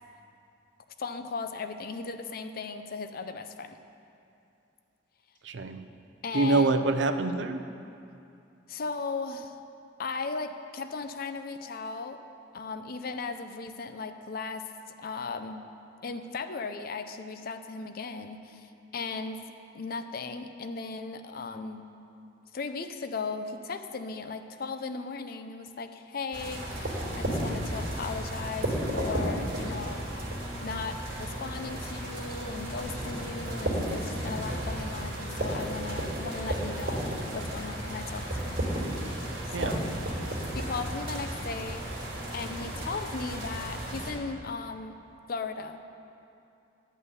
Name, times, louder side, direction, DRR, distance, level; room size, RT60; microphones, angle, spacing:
voice 1, 1.0-3.8 6.2-6.7 8.7-9.6 10.0-12.2 12.5-14.7 15.0-15.7 16.0-19.4 19.7-21.9 22.5-30.0 30.6-38.6 39.5-40.0 40.5-41.9 42.3-45.0 45.3-45.8, left 4 dB, 50° left, 8 dB, 0.5 m, -37 dB
voice 2, 5.4-5.8 6.3-7.6 39.5-39.8, right 3 dB, 70° right, 9 dB, 0.6 m, -25 dB
sound 1, 26.3-44.1, right 1 dB, 55° right, 3.0 m, -33 dB
11.0 x 5.5 x 8.2 m, 2.6 s
head